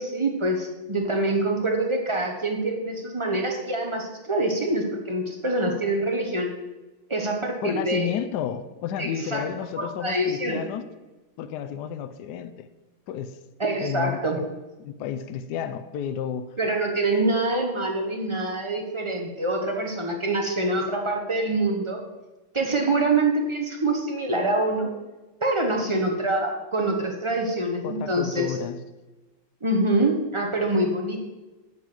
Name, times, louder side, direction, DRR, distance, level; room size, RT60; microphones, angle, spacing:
voice 1, 0.0-6.5 7.1-8.1 9.0-9.5 9.8-10.6 13.6-14.4 16.6-22.0 22.5-24.9 25.4-28.6 29.6-31.2, right 2 dB, 40° right, 1 dB, 0.4 m, -25 dB
voice 2, 7.6-10.8 11.4-12.7 13.1-13.4 13.8-14.2 14.8-16.6 27.8-28.8, left 9 dB, 75° left, 11 dB, 0.9 m, -31 dB
11.0 x 4.7 x 7.5 m, 1.1 s
omnidirectional pair, 2.3 m